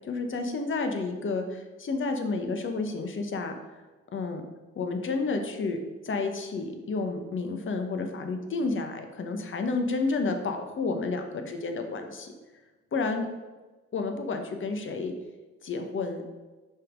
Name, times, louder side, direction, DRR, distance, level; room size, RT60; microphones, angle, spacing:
voice 1, 0.1-3.6 4.1-4.4 4.8-5.8 6.0-12.3 12.9-13.2 13.9-15.1 15.6-16.2, left 3 dB, 40° left, 5 dB, 0.9 m, -30 dB
5.4 x 3.7 x 5.0 m, 1.2 s
cardioid pair, 90°, 30 cm